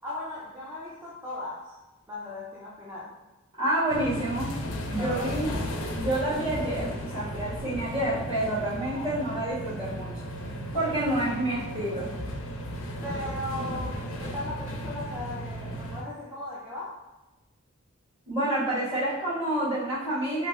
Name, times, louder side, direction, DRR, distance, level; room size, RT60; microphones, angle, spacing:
voice 1, 0.0-1.8 2.1-3.2 5.0-5.3 8.9-9.1 10.7-11.0 13.0-17.0, left 1 dB, 10° right, -8 dB, 0.4 m, -37 dB
voice 2, 3.6-4.5 4.9-5.5 5.9-10.1 10.7-12.1 18.3-20.5, right 1 dB, 30° right, -11 dB, 1.4 m, -28 dB
sound 1, 3.9-16.0, equal, 75° left, 0.4 m, -35 dB
3.1 x 2.6 x 2.3 m, 1.1 s
head